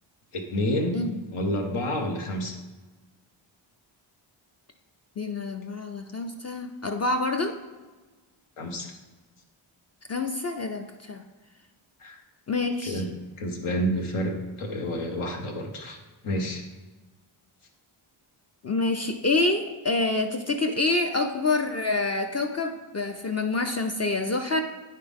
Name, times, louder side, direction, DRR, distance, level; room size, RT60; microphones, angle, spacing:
voice 1, 0.3-1.0 1.3-2.6 8.6-8.9 12.0-12.2 12.9-13.1 13.4-16.0 16.2-16.7, equal, 80° left, 2 dB, 1.0 m, -29 dB
voice 2, 5.2-7.5 10.1-11.2 12.5-13.0 18.6-24.6, left 3 dB, 35° left, 5 dB, 0.4 m, -27 dB
9.2 x 5.6 x 3.6 m, 1.3 s
wide cardioid pair, 135°, 50 cm